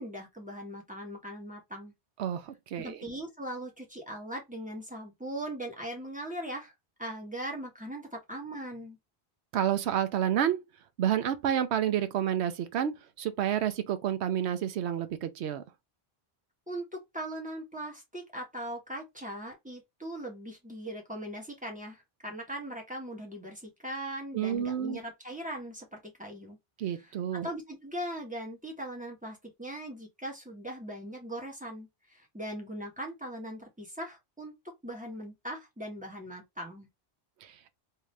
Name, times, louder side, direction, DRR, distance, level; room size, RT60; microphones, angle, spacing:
voice 1, 0.0-1.9 2.8-6.7 7.0-9.0 16.7-26.6 27.0-34.5 34.8-36.9, right 1 dB, 5° right, 1.5 m, -40 dB
voice 2, 2.2-3.0 9.5-10.6 11.0-15.6 24.3-25.0 26.8-27.5 37.4-37.5, right 10 dB, 85° right, 0.9 m, -29 dB
3.7 x 2.8 x 3.2 m
omnidirectional pair, 1.1 m